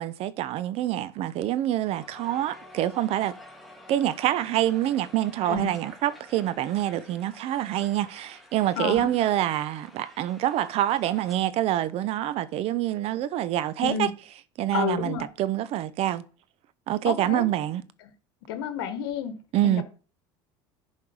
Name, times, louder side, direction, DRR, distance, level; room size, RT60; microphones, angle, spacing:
voice 1, 0.0-3.3 3.9-14.1 14.6-16.2 16.9-17.8 19.5-19.8, right 13 dB, 55° right, 0.7 m, -26 dB
Crowd, 1.9-11.4, left 1 dB, ahead, 1.8 m, -50 dB
voice 2, 8.8-9.1 13.8-14.1 14.7-15.3 17.0-17.4 18.5-19.3 19.6-19.8, left 8 dB, 85° left, 1.1 m, -30 dB
10.5 x 4.5 x 4.8 m
supercardioid pair, 95°, 12 cm